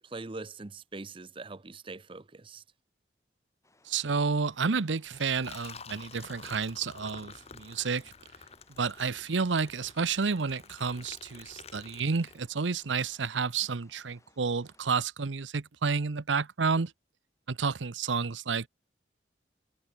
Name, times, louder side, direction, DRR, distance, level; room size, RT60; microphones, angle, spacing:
voice 1, 0.0-2.6, right 3 dB, 30° right, 0.7 m, -42 dB
sound 1, 3.6-15.0, left 2 dB, 15° left, 6.6 m, -66 dB
voice 2, 3.9-8.0 8.8-16.9 17.5-18.7, right 5 dB, 90° right, 0.8 m, -30 dB
Liquid, 5.1-12.8, left 5 dB, 35° left, 1.9 m, -50 dB
head